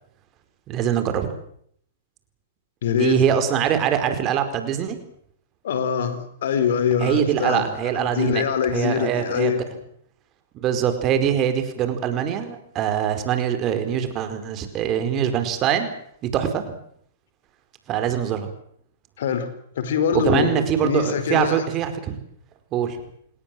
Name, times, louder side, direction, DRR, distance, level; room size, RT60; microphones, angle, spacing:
voice 1, 0.7-1.3 3.0-5.0 7.0-8.4 8.7-9.6 10.5-15.9 16.2-16.7 17.9-18.5 20.1-22.2 22.7-23.0, right 9 dB, 35° right, 8 dB, 4.8 m, -23 dB
voice 2, 2.8-3.2 5.6-7.7 7.9-9.8 19.2-19.5 19.8-21.6, left 7 dB, 65° left, 12 dB, 4.3 m, -24 dB
29.0 x 19.0 x 7.8 m, 0.65 s
hypercardioid pair, 120°, 0 cm